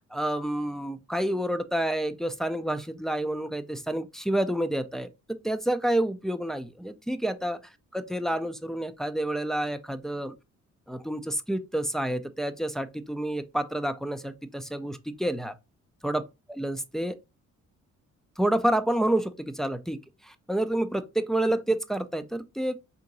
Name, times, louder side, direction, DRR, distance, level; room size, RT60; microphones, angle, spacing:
voice 1, 0.0-5.1 5.4-7.6 7.9-10.3 10.9-15.5 16.0-16.2 16.5-17.2 18.4-20.0 20.2-22.8, right 1 dB, ahead, 0.4 m, -29 dB
3.7 x 2.8 x 3.9 m
cardioid pair, 100°, 30 cm